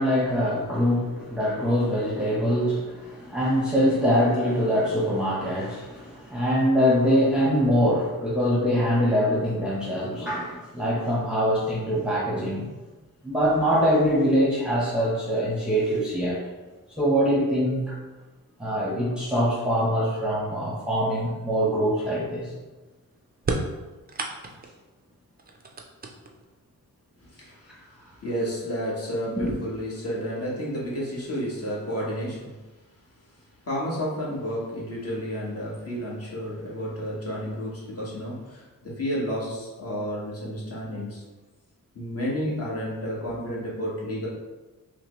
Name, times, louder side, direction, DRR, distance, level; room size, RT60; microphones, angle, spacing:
voice 1, 0.0-12.7 13.2-16.4 17.0-18.0 18.6-22.5 29.4-29.5, equal, 5° right, -6 dB, 0.8 m, -23 dB
sound 1, 23.4-24.8 25.4-26.6 27.6-27.7 28.7-28.8 29.3-29.7, right 3 dB, 30° right, 0.4 m, -32 dB
voice 2, 28.2-32.5 33.6-41.2 41.9-44.3, equal, 45° left, -5 dB, 1.1 m, -31 dB
5.6 x 2.0 x 3.1 m, 1.2 s
wide cardioid pair, 150°, 34 cm